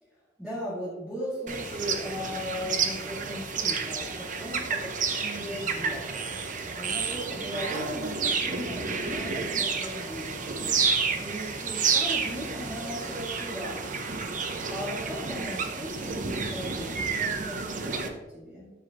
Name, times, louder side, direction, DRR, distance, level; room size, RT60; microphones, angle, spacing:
voice 1, 0.4-10.7 11.2-14.0 14.7-18.7, equal, ahead, -10 dB, 2.0 m, -38 dB
sound 1, 1.5-18.1, right 5 dB, 40° right, 0.7 m, -30 dB
12.0 x 4.7 x 2.9 m, 1.1 s
head